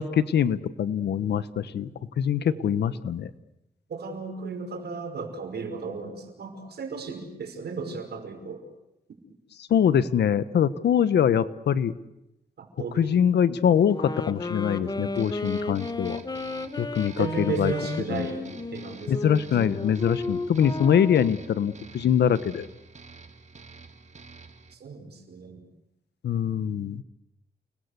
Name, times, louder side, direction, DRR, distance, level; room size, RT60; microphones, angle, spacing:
voice 1, 0.0-1.9 2.2-3.3 9.7-11.9 13.0-16.2 16.8-17.7 18.1-18.3 19.1-22.7 26.2-27.0, left 8 dB, 85° left, 15 dB, 1.1 m, -23 dB
voice 2, 2.5-3.0 3.9-8.6 12.6-13.2 17.2-19.1 19.6-19.7 24.7-25.6, right 4 dB, 75° right, 5 dB, 5.5 m, -35 dB
sound 1, 13.9-21.5, left 3 dB, 25° left, 1.2 m, -34 dB
sound 2, 15.2-24.8, right 4 dB, 45° right, 2.4 m, -48 dB
29.5 x 21.0 x 8.2 m, 0.89 s
cardioid pair, 90°, 17 cm